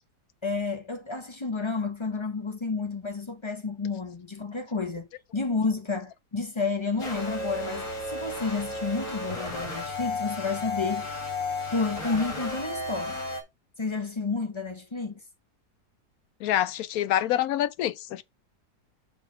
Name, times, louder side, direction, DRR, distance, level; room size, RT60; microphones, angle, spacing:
voice 1, 0.4-5.1 5.3-11.1 11.7-13.2 13.8-15.2, left 4 dB, 30° left, 0.5 m, -30 dB
sound 1, 7.0-13.4, left 2 dB, 50° left, 2.9 m, -33 dB
voice 2, 16.4-18.2, left 12 dB, 70° left, 1.0 m, -26 dB
6.3 x 4.9 x 5.0 m
omnidirectional pair, 1.7 m